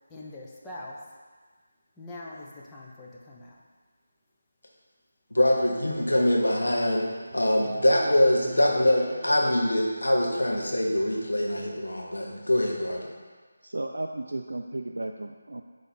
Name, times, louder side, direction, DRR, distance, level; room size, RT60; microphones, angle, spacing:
voice 1, 0.1-1.0 2.0-3.6, left 2 dB, 10° left, -5 dB, 0.7 m, -42 dB
voice 2, 5.3-7.1 7.3-13.1, left 1 dB, 65° left, -2 dB, 1.2 m, -24 dB
sound 1, 5.7-11.3, right 3 dB, 35° right, 1.1 m, -45 dB
voice 3, 13.6-15.6, right 2 dB, 60° right, 3 dB, 0.3 m, -34 dB
8.8 x 3.2 x 4.3 m, 1.4 s
figure-of-eight pair, 155°, 0 cm